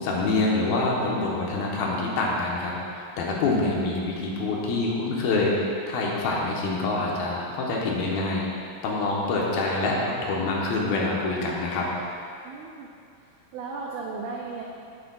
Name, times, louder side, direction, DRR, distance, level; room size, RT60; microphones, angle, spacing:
voice 1, 0.0-5.6 5.9-8.4 8.8-11.9, left 3 dB, 75° left, -3 dB, 2.8 m, -26 dB
voice 2, 12.4-12.9 13.5-14.6, right 4 dB, 85° right, -3 dB, 1.7 m, -35 dB
10.5 x 9.4 x 2.3 m, 2.4 s
omnidirectional pair, 4.5 m